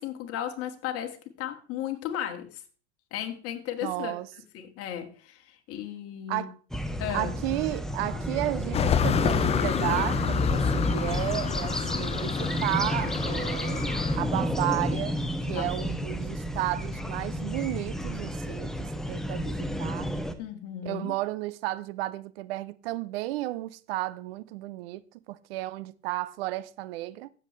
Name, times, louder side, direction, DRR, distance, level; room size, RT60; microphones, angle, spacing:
voice 1, 0.0-2.6 3.1-4.2 4.5-6.5 7.0-7.3 11.9-12.1 15.5-15.7 20.4-21.1, left 10 dB, 45° left, 2.0 m, -35 dB
voice 2, 3.8-4.3 6.3-6.5 7.1-15.2 15.5-20.1 20.8-25.0 25.3-27.3, right 17 dB, 60° right, 0.7 m, -33 dB
sound 1, 6.7-20.3, equal, ahead, 0.9 m, -31 dB
sound 2, 8.7-14.2, left 7 dB, 20° left, 0.5 m, -28 dB
15.5 x 7.4 x 3.2 m
hypercardioid pair, 95°, 34 cm